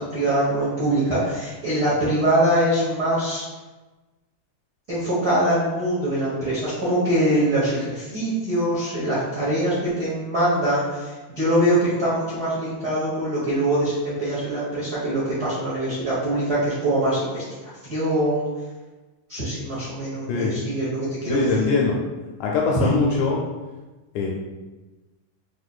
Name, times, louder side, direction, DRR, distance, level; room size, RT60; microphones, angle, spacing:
voice 1, 0.0-3.4 4.9-17.4 17.9-18.4 19.3-21.5 22.7-23.0, right 1 dB, 80° right, -10 dB, 0.8 m, -23 dB
voice 2, 21.3-22.0 22.4-23.4 24.2-24.3, left 4 dB, 80° left, -2 dB, 1.7 m, -22 dB
5.9 x 2.7 x 2.3 m, 1.2 s
omnidirectional pair, 3.7 m